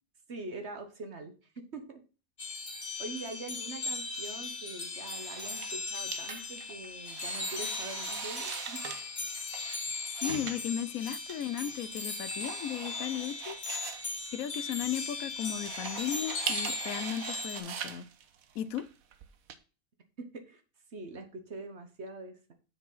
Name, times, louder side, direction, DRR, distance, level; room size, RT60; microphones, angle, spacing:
voice 1, 0.3-2.0 3.0-8.8 20.2-20.6 20.9-22.5, right 3 dB, 55° right, 1.5 m, -43 dB
sound 1, 2.4-17.6, left 4 dB, 55° left, 1.9 m, -38 dB
sound 2, 5.0-19.5, right 8 dB, 85° right, 1.3 m, -42 dB
voice 2, 10.2-13.6 14.3-18.0 18.5-18.9, left 10 dB, 80° left, 1.1 m, -35 dB
6.9 x 5.1 x 5.5 m
omnidirectional pair, 1.4 m